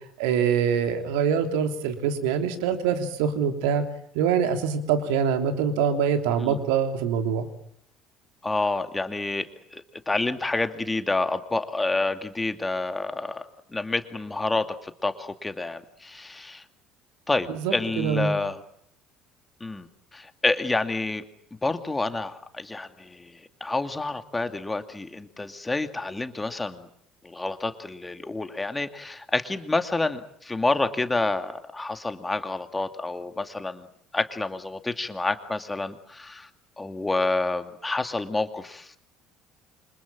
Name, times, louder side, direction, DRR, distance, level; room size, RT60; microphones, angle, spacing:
voice 1, 0.2-3.8 4.1-7.5 17.5-18.4, right 7 dB, 65° right, 6 dB, 3.2 m, -24 dB
voice 2, 8.4-16.6 17.3-18.6 19.6-21.2 21.6-26.9 27.2-33.9 34.1-36.5 36.8-39.0, left 2 dB, 15° left, 8 dB, 2.4 m, -29 dB
28.5 x 26.0 x 7.5 m, 0.70 s
figure-of-eight pair, 60°, 0 cm